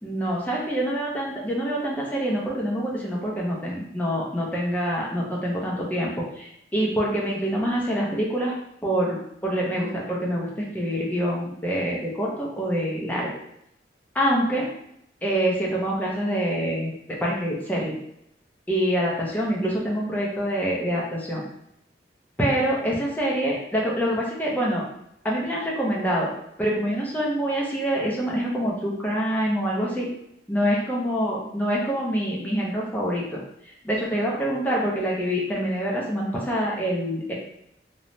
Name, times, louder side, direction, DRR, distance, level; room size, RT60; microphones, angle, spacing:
voice 1, 0.0-8.5 8.8-13.3 14.1-14.7 15.2-18.0 18.7-21.4 22.4-24.8 25.2-26.3 26.6-30.1 30.5-33.4 33.6-37.3, equal, 10° left, -4 dB, 0.5 m, -26 dB
3.1 x 2.0 x 2.6 m, 0.77 s
head